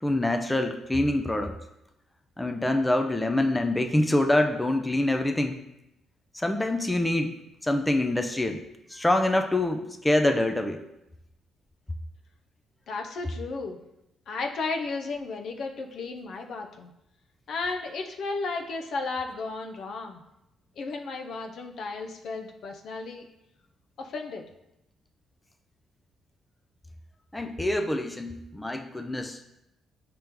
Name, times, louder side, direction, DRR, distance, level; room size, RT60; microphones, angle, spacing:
voice 1, 0.0-1.6 2.4-5.6 6.3-7.3 7.6-8.6 8.9-10.8 27.3-29.4, left 1 dB, 10° left, 5 dB, 0.4 m, -25 dB
voice 2, 12.9-13.8 14.3-16.9 17.5-20.2 20.8-23.2 24.0-24.5, left 3 dB, 65° left, 3 dB, 0.5 m, -34 dB
5.1 x 2.9 x 3.5 m, 0.86 s
cardioid pair, 90°, 0 cm